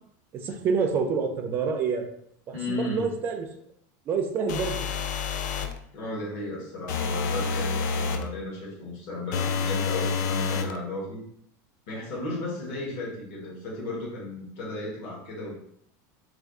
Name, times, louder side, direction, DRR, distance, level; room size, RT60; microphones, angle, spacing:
voice 1, 0.3-2.1 2.5-3.5 4.1-4.8, right 5 dB, 20° right, 4 dB, 0.3 m, -27 dB
voice 2, 2.5-3.1 5.9-11.2 11.9-15.5, left 2 dB, 45° left, -3 dB, 1.1 m, -34 dB
sound 1, 4.5-5.8 6.9-8.3 9.3-10.8, left 5 dB, 75° left, 0.4 m, -28 dB
3.3 x 2.3 x 3.7 m, 0.68 s
supercardioid pair, 180°, 10 cm